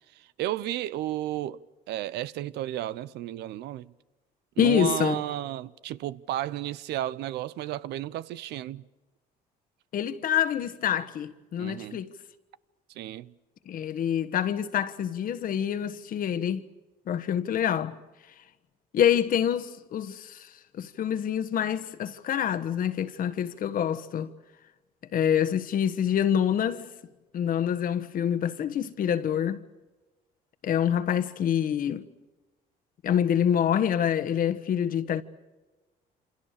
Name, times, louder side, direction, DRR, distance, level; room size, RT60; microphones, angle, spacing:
voice 1, 0.1-3.9 4.6-8.8 11.6-12.0 12.9-13.3, right 13 dB, 80° right, 0.8 m, -33 dB
voice 2, 4.6-5.2 9.9-12.1 13.7-16.6 17.1-18.0 18.9-20.5 20.7-24.3 25.1-26.9 27.3-29.6 30.6-32.1 33.0-35.2, left 9 dB, 55° left, 1.4 m, -26 dB
27.5 x 27.0 x 6.7 m
cardioid pair, 110°, 17 cm